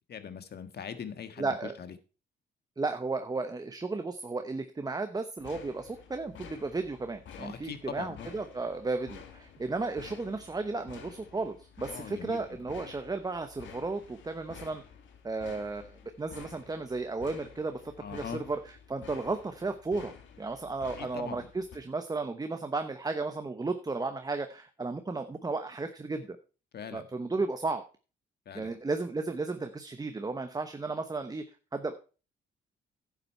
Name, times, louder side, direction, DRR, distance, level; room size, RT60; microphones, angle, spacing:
voice 1, 0.1-1.9 7.4-8.3 11.9-12.4 18.0-18.4 21.0-21.5 26.7-27.0 28.4-28.7, left 7 dB, 55° left, 10 dB, 1.6 m, -41 dB
voice 2, 1.4-1.7 2.8-14.8 15.2-17.8 18.1-18.6 18.9-26.4 26.9-27.8 28.5-31.4 31.7-31.9, right 3 dB, 20° right, 8 dB, 0.9 m, -34 dB
sound 1, 5.4-21.8, left 7 dB, 70° left, 2.1 m, -51 dB
10.5 x 8.2 x 4.4 m, 0.35 s
cardioid pair, 90°, 20 cm